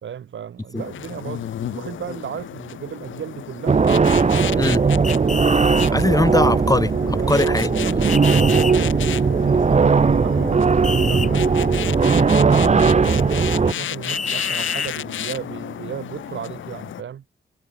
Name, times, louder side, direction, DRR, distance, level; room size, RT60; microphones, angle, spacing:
voice 1, 0.0-3.9 4.3-4.8 7.2-11.5 12.0-17.2, right 8 dB, 75° right, 4.4 m, -34 dB
sound 1, 0.8-17.0, left 11 dB, 80° left, 1.8 m, -32 dB
sound 2, 3.7-13.7, right 5 dB, 35° right, 0.9 m, -18 dB
sound 3, 5.0-5.9 8.1-8.7 10.8-11.3 14.1-14.9, left 4 dB, 40° left, 2.1 m, -28 dB
voice 2, 5.9-7.7, left 2 dB, 20° left, 3.3 m, -20 dB
supercardioid pair, 50°, 20 cm